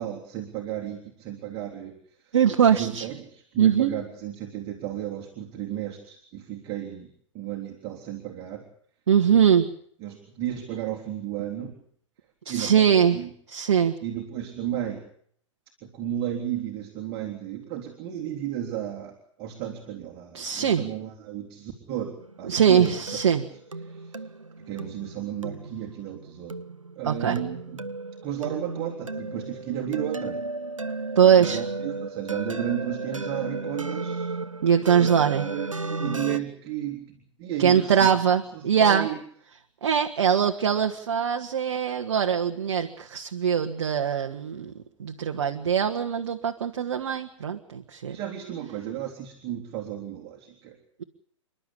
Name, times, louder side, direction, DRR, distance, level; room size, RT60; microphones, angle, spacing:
voice 1, 0.0-2.4 2.7-7.1 7.3-8.7 9.3-9.4 10.0-11.7 12.5-13.3 14.0-15.1 15.8-23.2 23.8-24.2 24.7-26.6 26.9-27.9 28.2-30.4 31.2-34.3 35.0-38.1 38.5-39.2 48.1-50.8, right 11 dB, 30° right, 0 dB, 3.5 m, -34 dB
voice 2, 2.3-3.1 3.6-3.9 9.1-9.7 12.5-13.2 13.5-13.9 20.3-20.8 22.5-23.4 27.0-27.4 31.2-31.6 34.6-35.4 37.6-39.1 39.8-44.7 45.0-48.2, right 8 dB, 55° right, 4 dB, 1.8 m, -22 dB
sound 1, 22.2-36.4, right 3 dB, 85° right, 1.0 m, -34 dB
29.5 x 12.0 x 10.0 m, 0.63 s
figure-of-eight pair, 110°, 16 cm